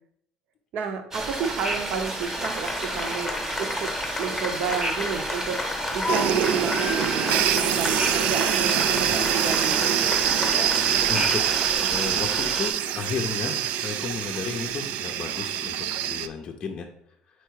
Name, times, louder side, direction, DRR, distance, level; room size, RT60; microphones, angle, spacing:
voice 1, 0.7-3.9 4.2-9.8, right 6 dB, 60° right, 6 dB, 0.8 m, -31 dB
sound 1, 1.1-12.7, right 1 dB, 20° right, 0.8 m, -31 dB
sound 2, 2.4-11.7, left 2 dB, 10° left, 0.9 m, -32 dB
sound 3, 6.1-16.3, right 10 dB, 80° right, 0.3 m, -25 dB
voice 2, 11.1-11.4 11.9-15.8 16.0-16.9, left 5 dB, 35° left, 3 dB, 0.5 m, -33 dB
4.6 x 4.4 x 4.7 m, 0.70 s
cardioid pair, 150°, 2 cm